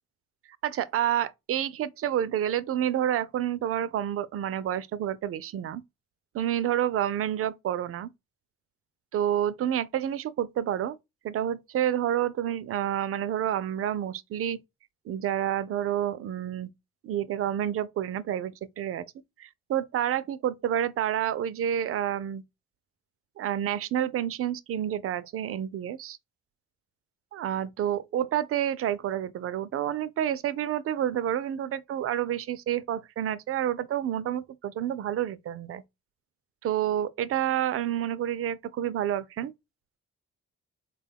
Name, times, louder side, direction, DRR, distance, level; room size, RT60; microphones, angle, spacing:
voice 1, 0.6-5.8 6.3-8.1 9.1-11.0 11.2-14.6 15.1-16.7 17.0-19.1 19.4-22.4 23.4-26.2 27.3-35.8 36.6-39.5, right 10 dB, 50° right, 0.4 m, -29 dB
3.6 x 2.2 x 3.4 m
cardioid pair, 90°, 30 cm